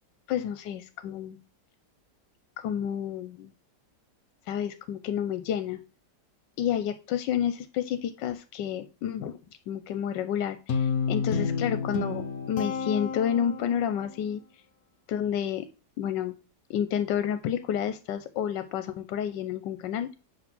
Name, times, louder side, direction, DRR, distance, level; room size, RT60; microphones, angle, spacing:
voice 1, 0.3-1.4 2.6-3.5 4.5-5.8 6.6-9.4 9.7-14.4 15.1-15.7 16.0-16.3 16.7-20.2, left 9 dB, 85° left, 10 dB, 1.3 m, -30 dB
Guitar, 10.7-14.0, left 5 dB, 60° left, 1.2 m, -30 dB
7.9 x 3.0 x 5.9 m, 0.33 s
omnidirectional pair, 1.9 m